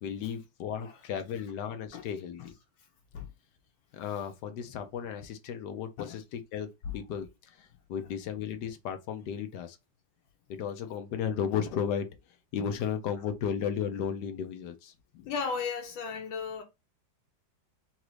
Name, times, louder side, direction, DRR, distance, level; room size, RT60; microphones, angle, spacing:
voice 1, 0.0-2.5 3.9-6.7 6.9-9.8 10.5-12.1 12.5-14.9, left 8 dB, 70° left, 1.2 m, -34 dB
voice 2, 15.1-16.6, left 5 dB, 90° left, 1.5 m, -35 dB
4.1 x 2.6 x 4.6 m
omnidirectional pair, 2.1 m